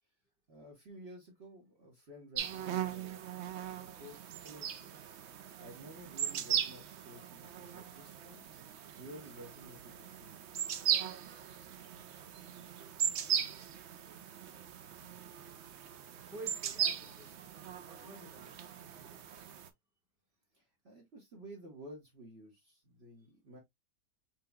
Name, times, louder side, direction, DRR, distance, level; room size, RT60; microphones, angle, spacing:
voice 1, 0.5-3.2 3.8-4.9 5.6-10.3 20.5-23.6, equal, 45° right, 1.4 m, -53 dB
sound 1, 2.4-19.7, right 9 dB, 60° right, 0.7 m, -38 dB
voice 2, 16.3-17.5 17.9-19.3, right 2 dB, ahead, 1.5 m, -51 dB
6.1 x 2.9 x 2.3 m
omnidirectional pair, 1.6 m